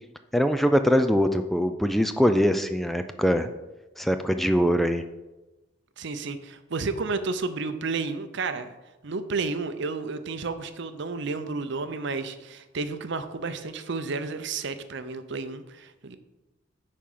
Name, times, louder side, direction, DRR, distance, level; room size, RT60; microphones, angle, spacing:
voice 1, 0.3-3.5 4.0-5.0, equal, ahead, 8 dB, 0.3 m, -22 dB
voice 2, 6.0-8.7 9.0-16.2, right 4 dB, 65° right, 10 dB, 0.6 m, -31 dB
9.8 x 4.4 x 5.5 m, 1.0 s
head